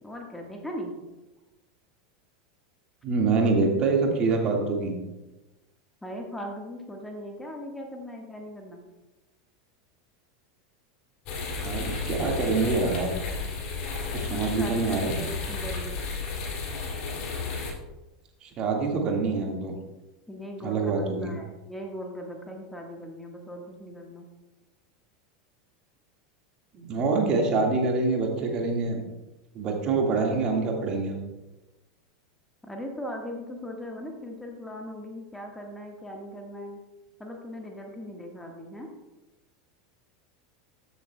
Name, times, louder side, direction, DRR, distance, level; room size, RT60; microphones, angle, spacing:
voice 1, 0.0-0.9 6.0-8.8 14.2-16.0 20.3-24.3 32.6-36.8 37.2-38.9, equal, 5° left, 1 dB, 1.4 m, -39 dB
voice 2, 3.0-5.0 11.6-13.1 14.1-15.2 18.4-19.8 20.6-21.4 26.7-29.0 29.5-31.2, right 3 dB, 40° right, 1 dB, 1.7 m, -25 dB
sound 1, 11.3-17.7, left 4 dB, 50° left, 2.5 m, -33 dB
14.0 x 7.4 x 2.2 m, 1.1 s
figure-of-eight pair, 85°, 2 cm